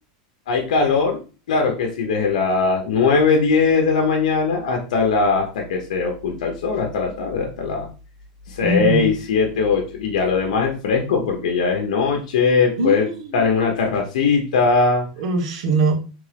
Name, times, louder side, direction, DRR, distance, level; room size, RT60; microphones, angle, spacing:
voice 1, 0.5-1.2 1.5-7.9 8.5-15.1, left 4 dB, 80° left, 1 dB, 1.0 m, -20 dB
voice 2, 8.6-9.1 12.8-13.4 15.2-16.0, right 3 dB, 65° right, 3 dB, 1.4 m, -21 dB
3.6 x 3.4 x 3.4 m, 0.36 s
supercardioid pair, 145°, 4 cm